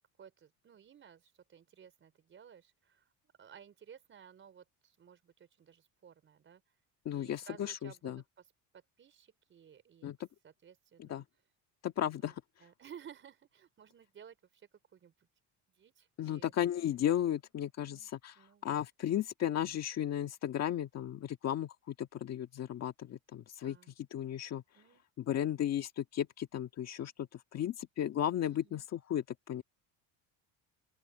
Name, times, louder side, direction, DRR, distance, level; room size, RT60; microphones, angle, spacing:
voice 1, 0.2-3.1 3.4-6.6 7.1-8.2 9.0-10.1 10.4-11.2 12.2-12.3 12.6-15.3 15.7-16.5 17.8-18.1 18.3-18.8 23.6-23.9 24.7-25.0 28.4-28.9, right 8 dB, 30° right, 4.8 m, -56 dB
voice 2, 7.1-8.2 10.0-10.2 11.0-11.2 11.8-12.4 16.2-18.4 18.6-23.8 24.1-24.6 25.2-29.6, left 11 dB, 40° left, 1.7 m, -35 dB
open air
cardioid pair, 170°, 40 cm